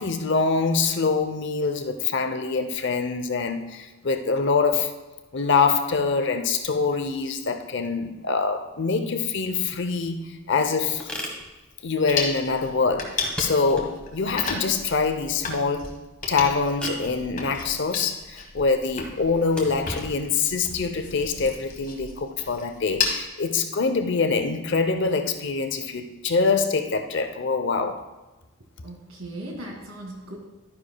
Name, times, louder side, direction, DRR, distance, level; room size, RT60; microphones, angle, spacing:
voice 1, 0.0-4.9 5.3-11.1 11.8-16.0 16.3-28.0, left 4 dB, 55° left, 0.7 m, -24 dB
sound 1, 9.6-22.0, equal, 5° left, 1.2 m, -41 dB
sound 2, 12.1-23.2, left 4 dB, 40° left, 1.4 m, -34 dB
voice 2, 28.8-30.4, right 1 dB, 75° right, 2.1 m, -38 dB
12.5 x 9.8 x 2.3 m
head